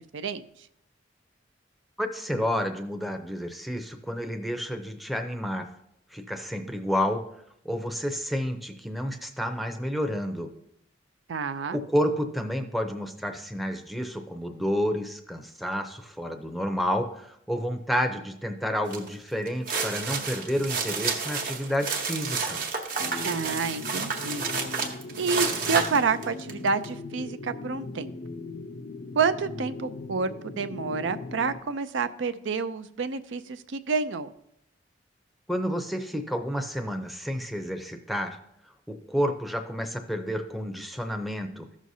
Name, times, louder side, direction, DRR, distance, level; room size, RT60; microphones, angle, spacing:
voice 1, 2.0-5.7 6.1-7.2 7.6-10.5 11.7-22.6 35.5-38.4 38.9-41.7, equal, ahead, 5 dB, 0.6 m, -30 dB
voice 2, 11.3-11.8 23.2-24.4 25.2-28.1 29.2-34.3, right 5 dB, 80° right, 11 dB, 0.5 m, -29 dB
sound 1, 18.9-19.1 19.5-26.9, right 5 dB, 50° right, 1.0 m, -30 dB
sound 2, 23.0-31.6, left 3 dB, 50° left, 0.4 m, -39 dB
14.5 x 6.2 x 2.7 m, 0.76 s
head